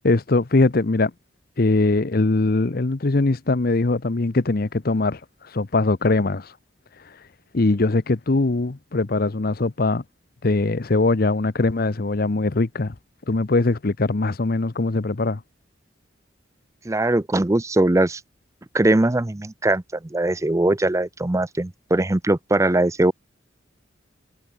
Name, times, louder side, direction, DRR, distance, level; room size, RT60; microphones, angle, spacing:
voice 1, 0.0-1.1 1.6-5.2 5.5-6.5 7.5-10.0 10.4-12.9 13.3-15.4, left 2 dB, 50° left, 0.8 m, -21 dB
voice 2, 16.9-18.2 18.7-19.8 20.1-23.1, right 2 dB, 15° right, 0.5 m, -20 dB
head